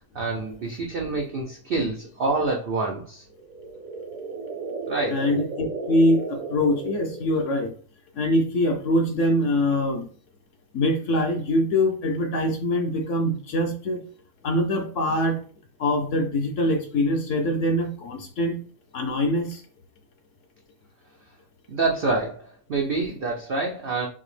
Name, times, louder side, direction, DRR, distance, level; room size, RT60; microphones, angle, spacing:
voice 1, 0.1-3.2 4.9-5.2 21.7-24.1, right 3 dB, 90° right, 0 dB, 0.4 m, -27 dB
sound 1, 3.3-7.7, right 4 dB, 70° right, 1.0 m, -34 dB
voice 2, 5.1-7.7 8.1-10.1 10.7-14.0 14.4-15.4 15.8-18.6 18.9-19.6, left 1 dB, 60° left, 5 dB, 0.8 m, -23 dB
5.7 x 2.0 x 3.2 m, 0.43 s
omnidirectional pair, 1.7 m